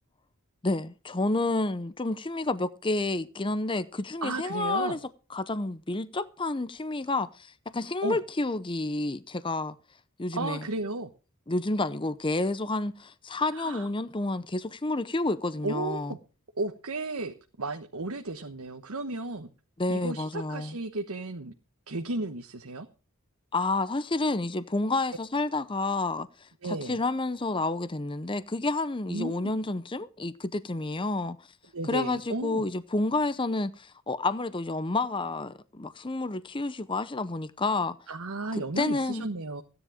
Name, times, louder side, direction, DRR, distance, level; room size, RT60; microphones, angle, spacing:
voice 1, 0.6-5.0 5.3-9.7 10.2-10.6 11.5-16.2 19.8-20.8 23.5-31.4 31.9-38.0 38.8-39.3, left 2 dB, 20° left, 0.7 m, -30 dB
voice 2, 4.2-5.0 8.0-8.2 10.3-11.1 13.5-13.9 15.6-16.2 16.5-19.5 19.9-21.5 21.9-22.9 26.6-27.0 29.1-29.5 31.7-32.7 38.1-39.6, right 2 dB, 80° right, 1.2 m, -34 dB
15.5 x 10.0 x 4.9 m
head